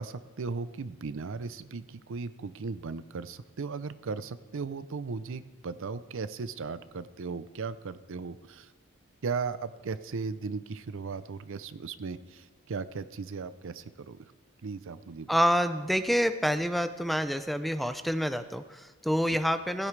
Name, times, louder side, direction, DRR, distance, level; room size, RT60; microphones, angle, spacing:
voice 1, 0.0-8.7 9.2-14.2 14.6-15.3, right 4 dB, 65° right, 14 dB, 0.5 m, -37 dB
voice 2, 15.3-19.9, equal, ahead, 10 dB, 0.4 m, -27 dB
15.5 x 15.5 x 3.3 m, 1.2 s
head